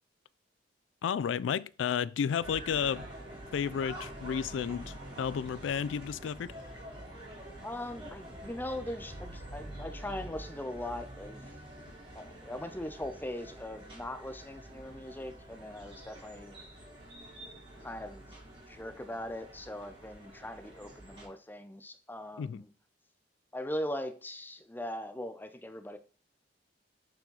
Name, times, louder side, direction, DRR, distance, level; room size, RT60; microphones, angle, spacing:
voice 1, 1.0-3.1 3.5-6.6 22.4-22.6, left 7 dB, 80° left, 0.3 m, -32 dB
sound 1, 2.4-21.3, right 1 dB, 30° right, 2.7 m, -47 dB
voice 2, 7.6-11.4 12.1-16.5 17.8-18.3 18.5-22.7 23.5-26.0, left 1 dB, 10° left, 0.6 m, -40 dB
7.0 x 4.3 x 3.9 m
head